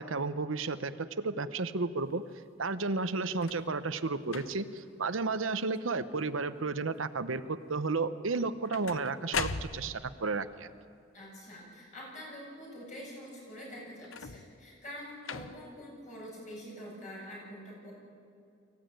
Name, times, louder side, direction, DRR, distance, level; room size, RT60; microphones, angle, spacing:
voice 1, 0.0-2.2 2.6-10.7, right 3 dB, 85° right, 11 dB, 0.9 m, -32 dB
sound 1, 3.3-3.7 4.3-4.8 5.4-5.8 6.0-6.6 8.3-10.2 14.0-14.6 15.2-15.8 16.6-16.7, left 5 dB, 85° left, 0.9 m, -40 dB
voice 2, 11.1-17.9, equal, 40° left, -3 dB, 7.9 m, -46 dB
24.0 x 16.0 x 9.1 m, 2.4 s
head